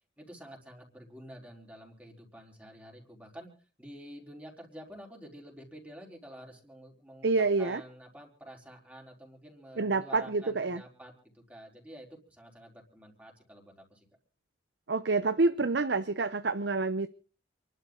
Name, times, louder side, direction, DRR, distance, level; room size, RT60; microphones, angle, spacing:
voice 1, 0.2-3.5 3.8-14.1, equal, 10° right, 4.3 m, -49 dB
voice 2, 7.2-7.8 9.8-10.8 14.9-17.1, right 3 dB, 75° right, 0.8 m, -27 dB
28.5 x 12.0 x 3.9 m
head